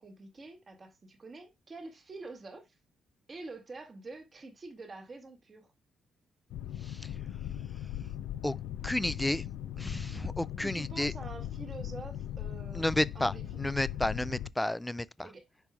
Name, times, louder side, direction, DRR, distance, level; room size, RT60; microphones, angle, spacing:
voice 1, 0.0-2.7 3.3-5.7 10.6-12.9 13.1-13.7 15.2-15.4, right 3 dB, 35° right, 1.8 m, -46 dB
Boat Water vehicle, 6.5-14.5, left 11 dB, 85° left, 0.4 m, -39 dB
voice 2, 8.8-9.4 9.8-11.1 12.7-15.3, left 1 dB, 10° left, 0.3 m, -32 dB
11.0 x 4.7 x 2.3 m
cardioid pair, 90°, 0 cm